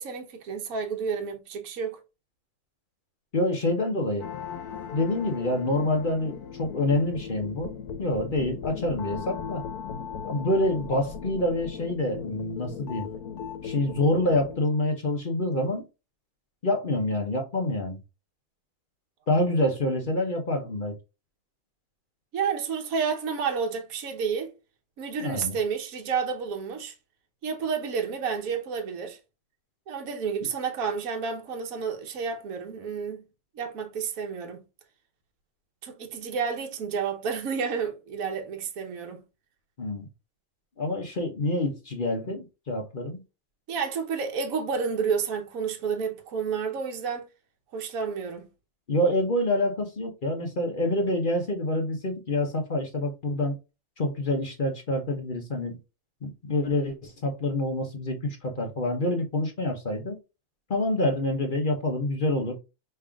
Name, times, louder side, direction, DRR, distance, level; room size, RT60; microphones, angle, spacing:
voice 1, 0.0-2.0 22.3-24.5 25.0-26.9 27.4-29.2 29.9-33.2 33.6-34.6 35.8-39.2 43.7-47.3 47.7-48.5, right 6 dB, 65° right, 1.3 m, -30 dB
voice 2, 3.3-4.3 4.9-7.7 8.0-9.6 10.2-13.1 13.6-15.8 16.6-18.0 19.3-20.9 25.2-25.6 39.8-40.1 40.8-43.2 48.9-53.6 54.0-55.8 56.2-60.1 60.7-62.6, left 1 dB, 40° left, 0.9 m, -27 dB
sound 1, 4.2-14.6, left 7 dB, 90° left, 1.3 m, -38 dB
5.3 x 3.4 x 2.3 m
omnidirectional pair, 1.6 m